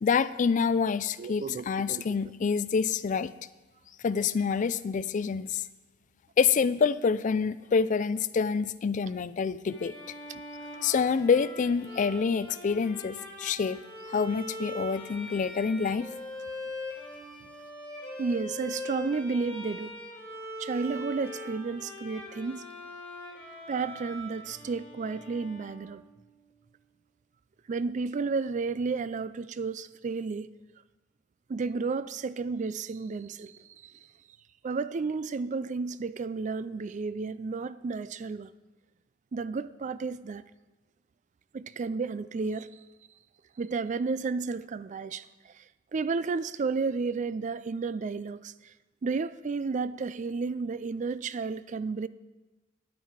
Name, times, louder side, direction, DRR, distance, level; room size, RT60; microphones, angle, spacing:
voice 1, 0.0-3.3 4.0-5.6 6.4-9.9 10.8-13.8 14.1-16.1, left 5 dB, 40° left, 0.3 m, -27 dB
voice 2, 1.2-2.3 10.6-10.7 18.2-19.9 20.6-22.7 23.7-26.0 27.7-30.5 31.5-33.9 34.6-38.5 39.3-40.4 41.5-42.7 43.6-45.6 45.9-48.7 49.0-52.1, right 4 dB, 40° right, 0.3 m, -32 dB
Bowed string instrument, 9.7-26.2, left 1 dB, 5° left, 2.4 m, -42 dB
10.5 x 9.1 x 4.7 m
head